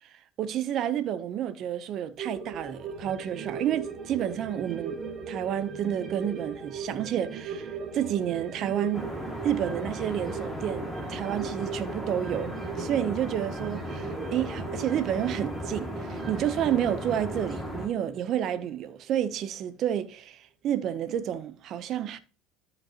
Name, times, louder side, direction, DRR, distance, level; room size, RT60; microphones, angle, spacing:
voice 1, 0.4-5.0 5.3-9.1 9.4-12.5 12.8-22.2, right 10 dB, 50° right, 0.8 m, -30 dB
sound 1, 2.2-19.0 19.3-19.4, right 5 dB, 35° right, 1.4 m, -39 dB
sound 2, 8.9-17.9, left 1 dB, ahead, 2.3 m, -37 dB
13.0 x 5.3 x 3.0 m
supercardioid pair, 115°, 0 cm